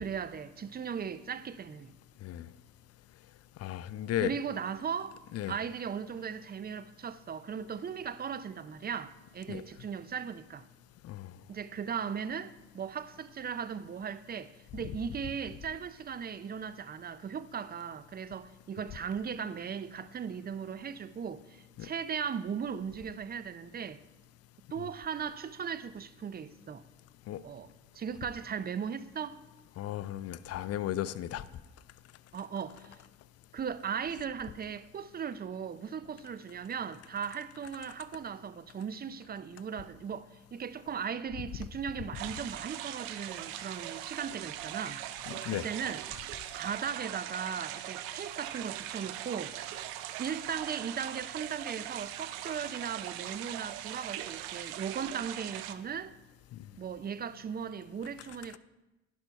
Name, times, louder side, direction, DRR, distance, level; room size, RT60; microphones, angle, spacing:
voice 1, 0.0-1.9 4.2-5.1 5.5-10.6 11.5-24.0 24.7-26.8 27.4-27.7 27.9-29.4 32.3-33.0 33.5-45.1 45.5-46.0 46.6-49.5 50.2-56.1 56.8-58.6, right 7 dB, 30° right, 0.5 m, -37 dB
voice 2, 3.6-4.3 5.3-5.6 9.5-9.6 11.0-11.3 21.8-21.9 27.3-27.4 29.8-31.4 45.3-45.7, left 12 dB, 55° left, 0.5 m, -35 dB
sound 1, 42.1-55.7, right 13 dB, 85° right, 0.5 m, -41 dB
11.0 x 5.4 x 4.5 m
hypercardioid pair, 60°, 31 cm